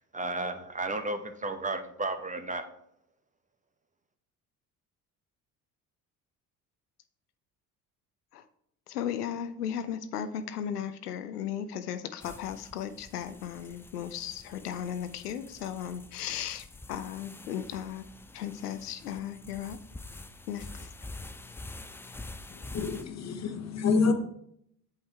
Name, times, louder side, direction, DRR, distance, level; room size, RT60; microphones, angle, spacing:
voice 1, 0.0-2.7, right 2 dB, 15° right, 0.8 m, -33 dB
voice 2, 8.9-18.1 18.3-19.8 20.5-20.9, left 9 dB, 85° left, 0.5 m, -36 dB
sound 1, 12.2-23.0, left 2 dB, 5° left, 0.3 m, -47 dB
voice 3, 22.5-24.1, left 4 dB, 35° left, 1.0 m, -28 dB
7.9 x 5.5 x 3.4 m
figure-of-eight pair, 55°, 45 cm